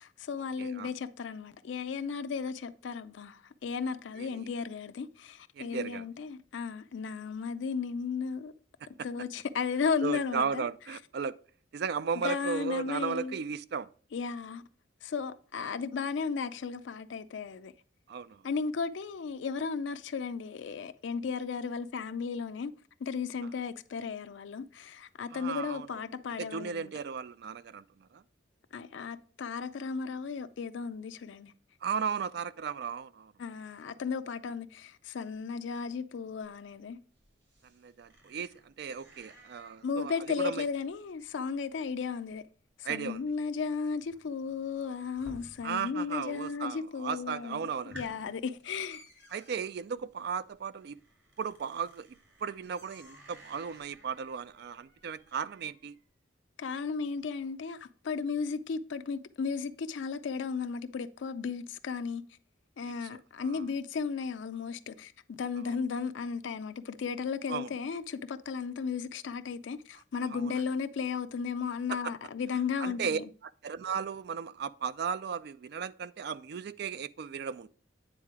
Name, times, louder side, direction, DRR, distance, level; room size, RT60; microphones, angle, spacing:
voice 1, 0.0-8.5 9.0-10.6 12.2-13.4 14.1-14.6 15.0-17.7 18.4-22.7 23.0-26.9 28.7-31.5 33.4-37.0 39.8-42.4 42.8-49.0 56.6-62.2 62.8-73.2, left 5 dB, 75° left, 0.4 m, -35 dB
voice 2, 0.6-0.9 4.2-4.5 5.5-6.1 10.0-11.4 11.7-13.9 18.1-18.4 23.4-23.5 25.3-26.0 26.4-28.2 31.8-33.3 37.7-40.7 42.8-43.3 45.6-48.2 49.3-51.0 51.4-52.2 52.4-56.0 63.0-63.6 65.7-65.8 67.5-67.7 70.3-70.5 71.9-72.1 72.8-73.2 73.6-77.7, right 6 dB, 60° right, 0.3 m, -36 dB
sound 1, 36.4-46.0 46.3-46.9 47.3-47.4 47.7-56.0, equal, 80° right, 4.3 m, -56 dB
9.0 x 3.7 x 4.7 m
head